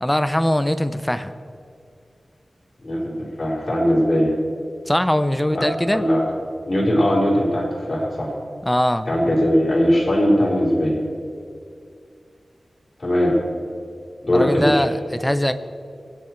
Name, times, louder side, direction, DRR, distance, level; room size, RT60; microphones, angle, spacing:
voice 1, 0.0-1.3 4.9-6.0 8.6-9.1 14.3-15.5, left 1 dB, 10° left, 11 dB, 0.8 m, -21 dB
voice 2, 2.8-4.3 5.5-5.6 5.9-6.3 6.7-8.3 9.1-11.0 13.0-13.4 14.2-14.8, equal, 40° left, -6 dB, 4.7 m, -19 dB
23.5 x 9.8 x 4.6 m, 2.4 s
wide cardioid pair, 75°, 0 cm